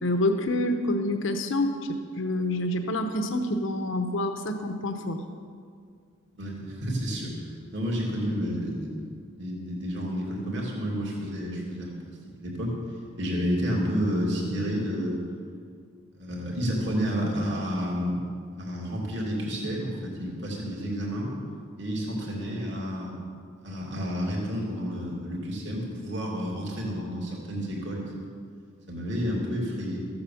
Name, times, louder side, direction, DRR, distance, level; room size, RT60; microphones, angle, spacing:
voice 1, 0.0-1.8 2.2-5.2, left 1 dB, 70° left, 6 dB, 0.9 m, -27 dB
voice 2, 6.3-12.7 13.2-15.2 16.1-18.2 18.6-21.3 21.8-23.1 23.6-28.1 28.9-30.1, equal, 60° right, -3 dB, 2.7 m, -30 dB
14.5 x 8.1 x 7.0 m, 2.1 s
head